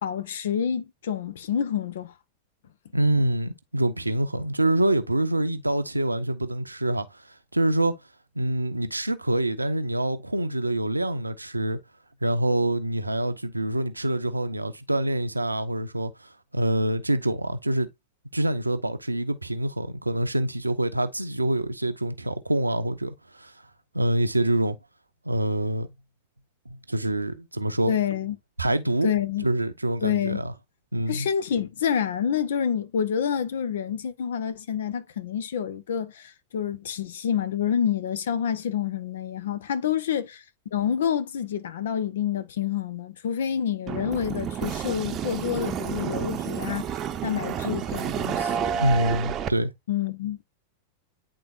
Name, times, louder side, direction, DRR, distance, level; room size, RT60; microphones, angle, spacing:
voice 1, 0.0-2.1 27.9-28.4 29.0-29.5 30.0-30.4 31.1-40.4 40.7-46.8 47.2-48.6 49.9-50.4, left 8 dB, 60° left, 0.8 m, -28 dB
voice 2, 2.9-7.2 7.5-8.0 8.4-11.8 12.2-17.9 18.3-23.5 23.9-24.8 25.2-25.9 26.7-27.9 28.6-29.1 29.4-30.5 30.9-31.3 48.7-49.7, right 1 dB, 85° right, 0.7 m, -26 dB
sound 1, 43.9-49.5, right 8 dB, 30° right, 0.8 m, -30 dB
9.7 x 3.8 x 2.5 m
figure-of-eight pair, 90°, 0 cm